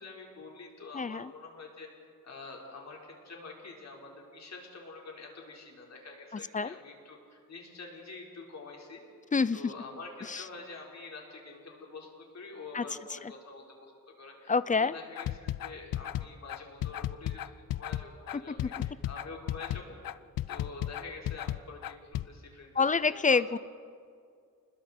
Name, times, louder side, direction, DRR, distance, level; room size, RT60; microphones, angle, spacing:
voice 1, 0.0-1.9 2.2-9.0 9.5-20.0 20.5-23.4, left 3 dB, 50° left, -1 dB, 4.5 m, -47 dB
voice 2, 0.9-1.3 6.5-6.7 9.3-9.7 10.3-10.4 12.7-12.8 14.5-14.9 18.5-18.7 22.8-23.6, left 4 dB, 25° left, 17 dB, 0.5 m, -27 dB
sound 1, 15.2-22.3, left 13 dB, 80° left, 0.5 m, -34 dB
30.0 x 20.5 x 4.4 m, 2.3 s
cardioid pair, 100°, 33 cm